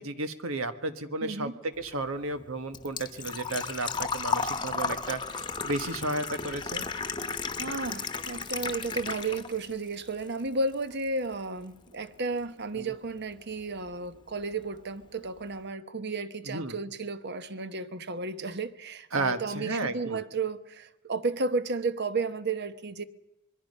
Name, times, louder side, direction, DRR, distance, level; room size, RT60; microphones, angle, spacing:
voice 1, 0.0-6.9 12.7-12.9 16.5-16.8 19.1-20.2, right 2 dB, 85° right, 1.5 m, -33 dB
voice 2, 1.2-1.6 7.5-23.0, right 3 dB, 55° right, 1.1 m, -33 dB
Engine / Trickle dribble / Fill (with liquid), 1.8-9.7 10.1-11.0 11.3-11.4 13.3-13.4 13.6-14.0 14.3-14.4 14.7-14.8, left 5 dB, 20° left, 1.1 m, -34 dB
26.0 x 22.5 x 5.5 m
head